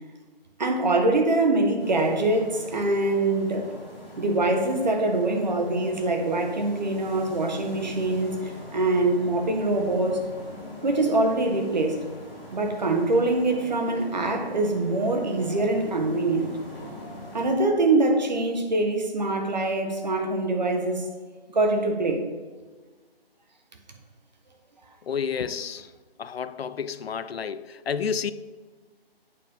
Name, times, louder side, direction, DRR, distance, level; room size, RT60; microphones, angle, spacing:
voice 1, 0.6-3.7 4.2-8.4 8.7-10.2 10.8-12.0 12.5-16.5 17.3-21.1 21.5-22.2, right 2 dB, 45° right, 3 dB, 1.2 m, -24 dB
sound 1, 1.8-17.5, equal, 10° right, 1.6 m, -42 dB
voice 2, 25.1-25.9 26.2-28.3, left 7 dB, 80° left, 15 dB, 0.5 m, -30 dB
8.2 x 4.7 x 5.3 m, 1.4 s
hypercardioid pair, 170°, 30 cm